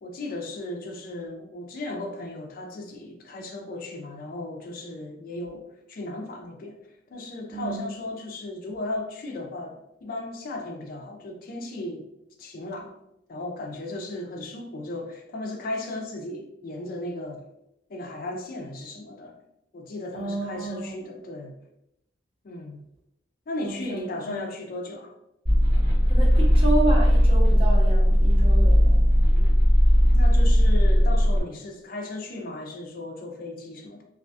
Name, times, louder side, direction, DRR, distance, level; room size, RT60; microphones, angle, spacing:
voice 1, 0.0-6.8 7.1-12.1 12.4-12.9 13.3-17.4 17.9-19.3 19.7-21.6 22.4-22.8 23.5-25.1 29.3-29.5 30.1-34.0, left 2 dB, 50° left, 2 dB, 0.4 m, -36 dB
voice 2, 7.5-7.8 20.1-21.0 23.6-24.4 26.1-29.0, right 2 dB, 30° right, -2 dB, 0.6 m, -30 dB
sound 1, 25.5-31.4, equal, 55° right, 1.2 m, -18 dB
2.4 x 2.2 x 2.6 m, 0.82 s
head